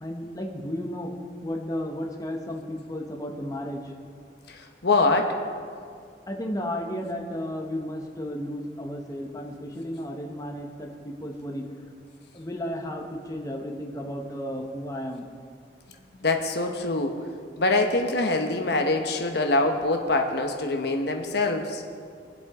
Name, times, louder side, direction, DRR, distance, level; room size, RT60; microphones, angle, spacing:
voice 1, 0.0-1.1 1.4-3.9 6.3-11.7 12.3-15.3, equal, 20° left, 2 dB, 1.0 m, -33 dB
voice 2, 4.5-5.3 15.9-17.2 17.6-21.8, left 2 dB, 65° left, 4 dB, 1.0 m, -24 dB
22.5 x 8.1 x 3.7 m, 2.2 s
head